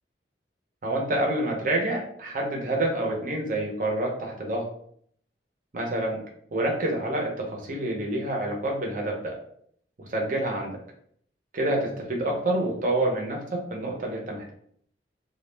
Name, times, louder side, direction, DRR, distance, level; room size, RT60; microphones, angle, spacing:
voice 1, 0.8-4.7 5.7-6.2 6.5-9.3 10.0-10.7 11.5-14.5, right 1 dB, 45° right, -1 dB, 0.6 m, -27 dB
2.2 x 2.1 x 3.1 m, 0.65 s
head